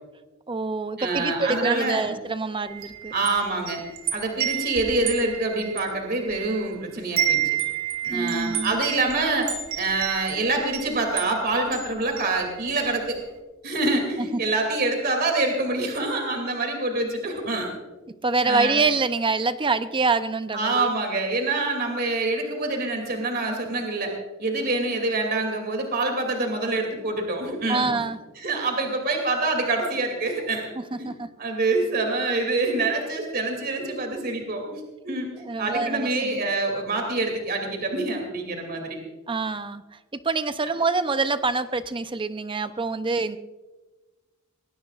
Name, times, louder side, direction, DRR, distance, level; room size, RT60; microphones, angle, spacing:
voice 1, 0.5-3.1 8.1-8.7 14.2-14.4 18.2-20.9 27.7-28.2 30.8-31.3 35.4-36.4 39.3-39.8 40.1-43.4, right 3 dB, 25° right, 11 dB, 0.6 m, -26 dB
voice 2, 1.0-2.1 3.1-3.8 4.1-7.4 8.0-9.5 9.7-13.2 13.6-17.7 18.4-18.8 20.5-24.1 24.4-27.9 28.4-30.7 31.0-31.1 31.4-39.0, right 2 dB, 45° right, 3 dB, 2.7 m, -26 dB
Wind chime, 2.7-6.7 7.0-12.9, right 10 dB, 85° right, 1.8 m, -30 dB
20.5 x 18.5 x 2.5 m, 1.2 s
head